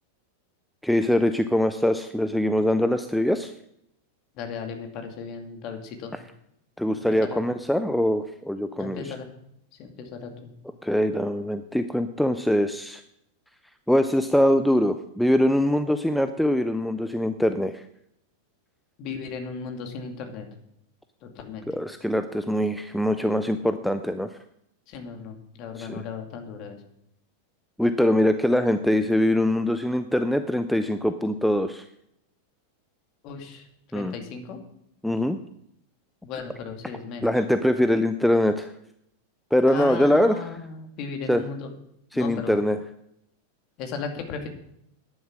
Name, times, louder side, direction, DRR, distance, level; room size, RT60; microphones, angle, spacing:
voice 1, 0.8-3.5 6.8-9.0 10.8-13.0 13.9-17.8 21.7-24.3 25.8-26.0 27.8-31.8 33.9-34.1 35.0-35.4 37.2-38.7 39.5-40.4 41.3-41.4 42.1-42.8, left 1 dB, ahead, 9 dB, 0.6 m, -23 dB
voice 2, 4.3-6.1 7.1-7.4 8.8-9.3 9.7-10.5 19.0-20.5 21.2-21.7 24.9-26.8 33.2-34.6 36.2-37.3 39.7-41.7 42.1-42.6 43.8-44.5, left 5 dB, 40° left, 4 dB, 2.4 m, -36 dB
10.5 x 10.5 x 6.1 m, 0.75 s
figure-of-eight pair, 90°, 0 cm